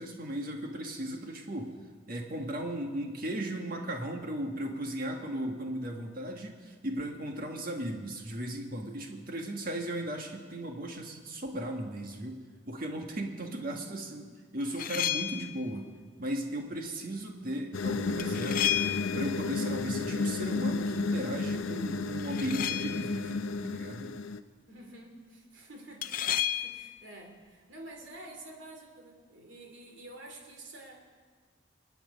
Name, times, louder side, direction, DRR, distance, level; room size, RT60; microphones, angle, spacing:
voice 1, 0.0-1.7 2.1-14.3 14.5-15.9 16.2-18.7 19.1-24.2, right 1 dB, 45° right, 2 dB, 1.7 m, -36 dB
voice 2, 13.8-14.2 24.7-31.0, right 1 dB, 70° right, 1 dB, 2.7 m, -49 dB
sound 1, 14.6-15.6 18.2-19.4 22.2-23.2 26.0-27.0, left 11 dB, 45° left, 0.5 m, -32 dB
sound 2, 17.7-24.4, left 3 dB, 85° left, 0.6 m, -32 dB
24.0 x 9.1 x 5.3 m, 1.5 s
head